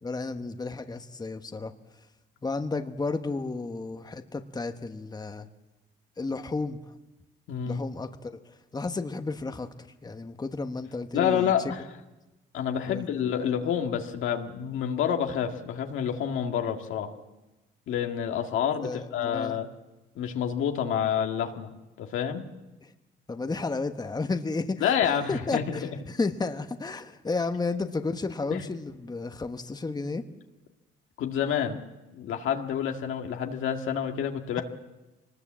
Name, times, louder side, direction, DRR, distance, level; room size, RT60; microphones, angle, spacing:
voice 1, 0.0-1.7 2.4-5.5 6.2-6.8 7.6-8.3 8.7-9.7 10.0-11.5 12.9-13.5 18.8-19.6 22.8-22.9 23.3-24.9 25.3-30.2, left 3 dB, 20° left, 7 dB, 1.2 m, -32 dB
voice 2, 7.5-7.8 11.1-11.8 12.5-17.1 17.9-19.7 20.2-21.7 22.0-22.4 24.8-25.9 28.5-28.6 31.2-31.8 32.1-34.6, left 8 dB, 85° left, 3 dB, 1.9 m, -28 dB
23.5 x 20.0 x 7.5 m, 1.1 s
cardioid pair, 90°, 20 cm